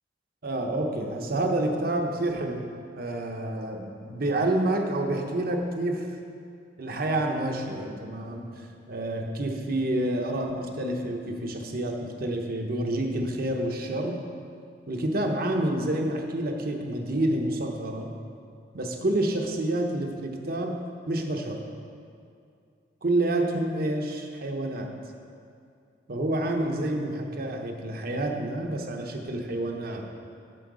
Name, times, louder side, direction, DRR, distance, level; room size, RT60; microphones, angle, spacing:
voice 1, 0.4-2.7 3.0-6.1 6.8-8.5 8.9-14.2 14.9-18.1 18.7-20.8 21.1-21.6 23.0-24.9 26.1-30.1, right 1 dB, 55° right, 3 dB, 0.9 m, -28 dB
7.7 x 7.6 x 4.8 m, 2.4 s
head